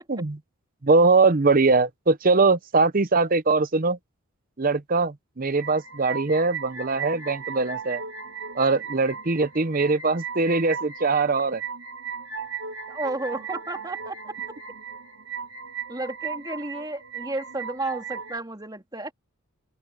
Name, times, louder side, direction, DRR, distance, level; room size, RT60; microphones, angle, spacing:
voice 1, 0.8-4.0 4.6-8.0 8.5-11.6, right 3 dB, 40° right, 0.7 m, -22 dB
sound 1, 5.5-18.4, right 6 dB, 70° right, 4.8 m, -37 dB
voice 2, 12.9-14.6 15.9-19.1, right 2 dB, 20° right, 2.8 m, -32 dB
open air
head